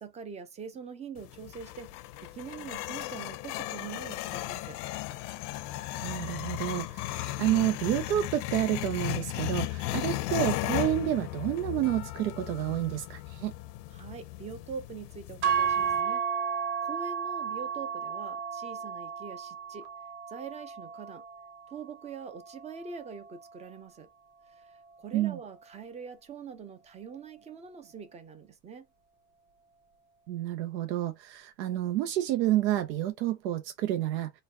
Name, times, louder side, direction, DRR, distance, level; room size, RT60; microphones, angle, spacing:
voice 1, 0.0-1.9 2.2-4.8 13.9-16.2 16.8-19.9 20.3-21.2 21.7-24.1 24.5-28.9, right 6 dB, 15° right, 0.4 m, -43 dB
sound 1, 1.2-16.0, left 16 dB, 70° left, 0.7 m, -36 dB
voice 2, 6.0-13.5 25.1-25.4 30.3-34.3, right 13 dB, 90° right, 0.8 m, -29 dB
sound 2, 15.4-23.7, right 7 dB, 50° right, 1.1 m, -33 dB
3.9 x 2.2 x 3.6 m
supercardioid pair, 135°, 49 cm